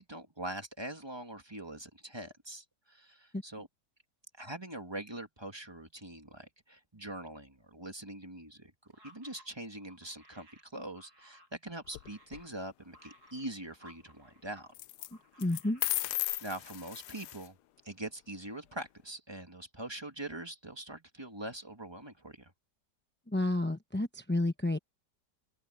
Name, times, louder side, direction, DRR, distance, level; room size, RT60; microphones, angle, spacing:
voice 1, 0.0-3.7 4.4-14.7 15.3-15.4 16.4-17.5 17.8-22.5, right 1 dB, 15° right, 1.6 m, -43 dB
sound 1, 8.9-14.7 15.0-15.9, equal, 60° right, 8.7 m, -61 dB
sound 2, 11.9-12.4 14.7-15.1 15.4-17.5, left 15 dB, 75° left, 1.1 m, -35 dB
voice 2, 15.4-15.8 23.3-24.8, left 2 dB, 15° left, 0.4 m, -30 dB
omnidirectional pair, 1.9 m